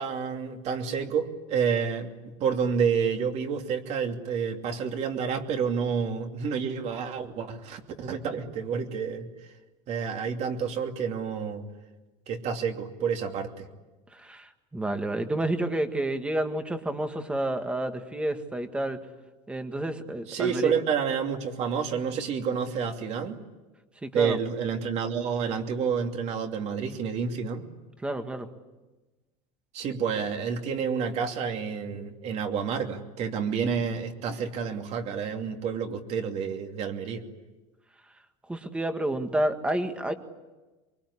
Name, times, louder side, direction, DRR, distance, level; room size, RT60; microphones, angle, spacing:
voice 1, 0.0-9.3 9.9-11.6 12.3-13.7 20.3-23.4 24.1-27.6 29.7-37.2, right 6 dB, 45° right, 4 dB, 2.8 m, -29 dB
voice 2, 14.1-19.0 19.5-20.7 24.0-24.4 28.0-28.5 38.5-40.1, right 1 dB, 5° right, 7 dB, 1.7 m, -30 dB
24.0 x 24.0 x 9.9 m, 1.2 s
cardioid pair, 155°, 16 cm